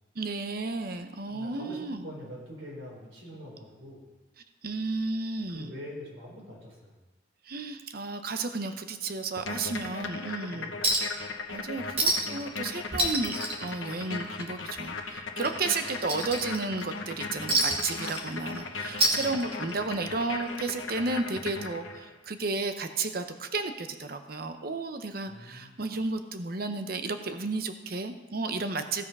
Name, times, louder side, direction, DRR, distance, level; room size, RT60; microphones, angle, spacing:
voice 1, 0.2-2.0 4.6-5.7 7.5-10.7 11.5-29.0, right 3 dB, 50° right, 8 dB, 0.7 m, -33 dB
voice 2, 1.3-4.1 5.5-6.9 10.5-11.0 18.9-19.4 25.3-25.9, equal, 90° right, -3 dB, 4.1 m, -45 dB
sound 1, 9.4-22.2, left 4 dB, 80° left, 0.9 m, -38 dB
Chink clink, 10.8-11.2 11.5-11.6 12.0-12.4 12.7-14.4 14.8-14.9 15.4-16.8 17.5-18.6 18.9-19.8 20.9-21.0, right 1 dB, 30° right, 1.5 m, -28 dB
15.5 x 5.6 x 5.4 m, 1.2 s
head